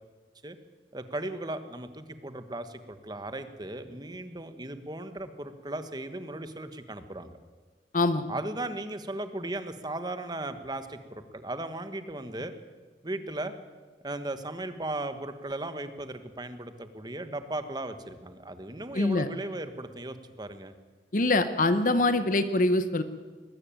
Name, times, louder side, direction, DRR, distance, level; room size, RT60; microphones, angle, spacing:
voice 1, 0.9-7.4 8.3-12.5 13.0-13.5 14.0-20.7, right 2 dB, 25° right, 9 dB, 1.3 m, -37 dB
voice 2, 7.9-8.3 18.9-19.3 21.1-23.0, left 2 dB, 50° left, 11 dB, 0.9 m, -24 dB
20.5 x 14.0 x 9.0 m, 1.4 s
head